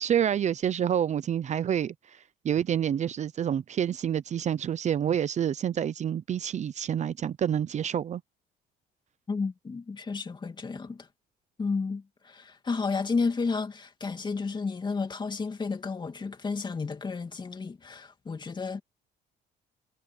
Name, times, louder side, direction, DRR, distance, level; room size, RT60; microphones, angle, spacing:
voice 1, 0.0-8.2, right 9 dB, 45° right, 0.8 m, -28 dB
voice 2, 9.3-11.1 11.6-18.8, left 4 dB, 25° left, 2.7 m, -32 dB
cardioid pair, 110°, 17 cm